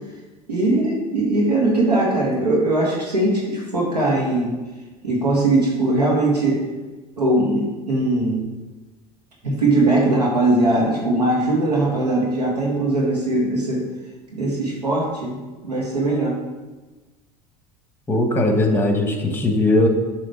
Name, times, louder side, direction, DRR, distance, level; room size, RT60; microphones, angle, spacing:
voice 1, 0.5-4.5 5.0-6.6 7.2-8.4 9.4-13.8 14.3-15.4 15.6-16.4, right 2 dB, 90° right, -3 dB, 1.6 m, -20 dB
voice 2, 18.1-19.9, left 2 dB, 10° left, 4 dB, 1.1 m, -19 dB
7.5 x 3.1 x 4.8 m, 1.2 s
figure-of-eight pair, 75°, 20 cm